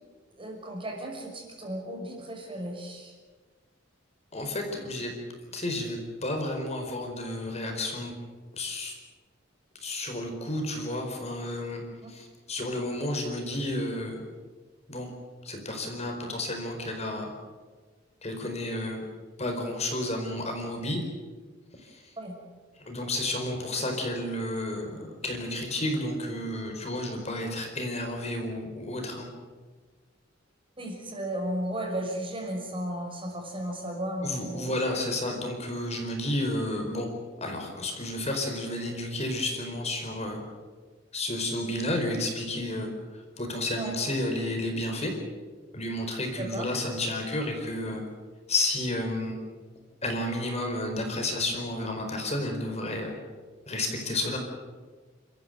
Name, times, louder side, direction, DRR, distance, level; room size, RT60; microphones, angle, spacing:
voice 1, 0.4-3.1 12.0-12.1 22.2-22.4 30.8-34.7 43.8-43.9 46.4-46.7, right 1 dB, 25° right, 1 dB, 5.8 m, -34 dB
voice 2, 4.3-5.1 5.5-8.1 8.5-8.9 9.8-11.8 12.1-14.2 14.9-15.1 15.4-17.3 18.2-19.0 19.4-21.0 21.8-22.1 22.8-29.3 34.2-37.1 37.4-40.4 41.1-45.1 45.7-48.0 48.5-49.4 50.0-53.1 53.7-54.4, left 1 dB, 35° left, 3 dB, 4.6 m, -31 dB
29.0 x 14.5 x 9.3 m, 1.4 s
head